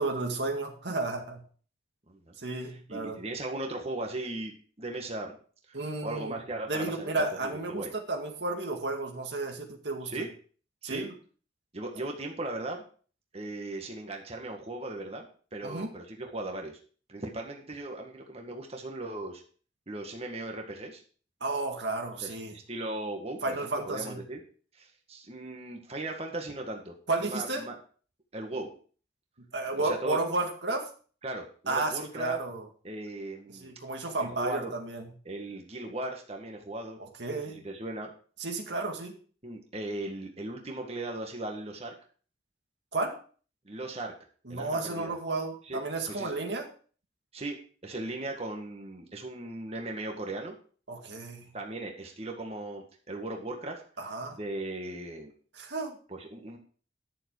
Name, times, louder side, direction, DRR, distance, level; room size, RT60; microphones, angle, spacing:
voice 1, 0.0-1.4 2.4-3.2 5.7-6.4 6.7-10.1 10.8-11.1 15.6-15.9 21.4-22.5 23.4-24.2 27.1-27.6 29.5-30.9 31.7-32.6 33.5-35.1 37.0-37.6 38.4-39.2 42.9-43.2 44.5-46.7 50.9-51.5 54.0-54.4 55.5-56.0, right 2 dB, 80° right, 2 dB, 2.1 m, -32 dB
voice 2, 2.7-5.3 5.7-5.8 6.0-7.9 10.0-10.3 10.8-11.1 11.7-12.8 13.3-15.3 15.5-16.7 17.1-19.4 19.9-21.0 22.2-24.4 24.8-26.9 27.2-27.7 28.3-28.7 29.8-30.2 31.2-32.4 32.8-33.7 34.4-34.7 35.3-37.0 37.3-38.1 39.4-41.9 43.7-44.1 44.5-45.1 45.7-45.8 46.1-46.3 47.3-47.6 47.8-50.5 51.5-53.8 54.4-55.3 56.1-56.6, right 2 dB, 35° right, 2 dB, 1.9 m, -37 dB
11.5 x 7.0 x 4.9 m, 0.42 s
head